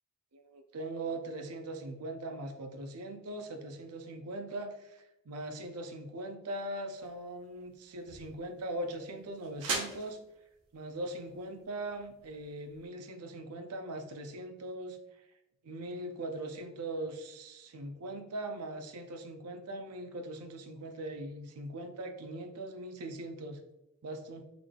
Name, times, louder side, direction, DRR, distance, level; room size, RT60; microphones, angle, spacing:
voice 1, 0.3-10.2 10.7-15.0 15.6-23.6 24.0-24.4, right 1 dB, 90° right, 6 dB, 0.5 m, -40 dB
sound 1, 6.9-12.9, right 3 dB, 65° right, 0.9 m, -43 dB
3.9 x 3.3 x 2.3 m, 0.91 s
head